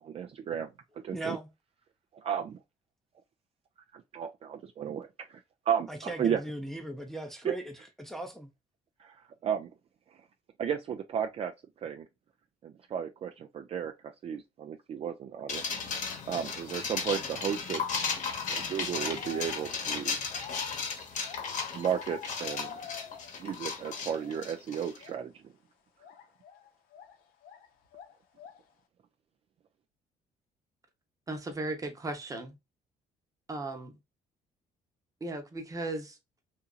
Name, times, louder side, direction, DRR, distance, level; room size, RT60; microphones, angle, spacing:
voice 1, 0.0-0.7 1.0-1.4 2.1-2.6 3.9-5.4 5.7-6.4 7.4-7.5 9.0-9.7 10.6-11.5 11.8-12.1 12.6-15.6 16.3-17.8 18.5-20.2 21.7-22.9 23.4-25.5, right 8 dB, 45° right, 0.4 m, -34 dB
voice 2, 1.1-1.5 5.9-8.5, right 1 dB, ahead, 0.6 m, -38 dB
sound 1, 15.5-25.0, left 5 dB, 60° left, 1.0 m, -35 dB
sound 2, 18.2-18.5 19.1-23.5 23.8-24.6 25.0-25.2 26.0-27.7 27.9-28.7, left 8 dB, 80° left, 0.7 m, -47 dB
voice 3, 31.3-32.5 33.5-33.9 35.2-36.1, right 2 dB, 25° right, 0.9 m, -36 dB
2.7 x 2.5 x 2.3 m
cardioid pair, 95°, 15 cm